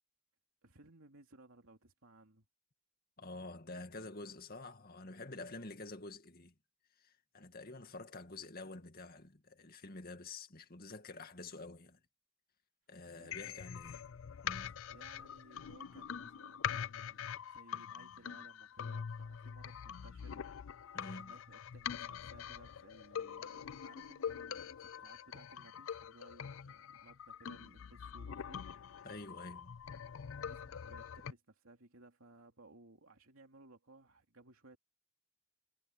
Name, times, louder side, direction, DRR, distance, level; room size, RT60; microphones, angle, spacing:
voice 1, 0.6-2.5 13.1-13.7 14.9-20.4 20.7-28.7 30.4-34.8, right 2 dB, 75° right, 2.8 m, -61 dB
voice 2, 3.2-6.5 7.0-12.0 12.9-14.0 14.4-14.7 20.9-21.3 29.0-29.8, left 2 dB, 45° left, 2.2 m, -48 dB
sound 1, 13.3-31.3, left 8 dB, 65° left, 0.4 m, -44 dB
head